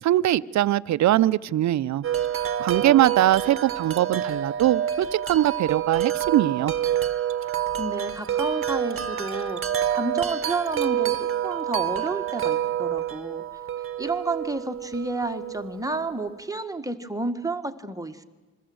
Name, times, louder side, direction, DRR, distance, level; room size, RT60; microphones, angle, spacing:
voice 1, 0.0-2.1 2.6-6.7, right 13 dB, 65° right, 17 dB, 0.7 m, -21 dB
Wind chime, 2.0-16.0, right 10 dB, 45° right, 1.2 m, -28 dB
voice 2, 7.4-13.4 14.0-18.2, right 2 dB, 10° right, 7 dB, 1.6 m, -31 dB
28.0 x 22.0 x 7.9 m, 1.2 s
cardioid pair, 90°, 30 cm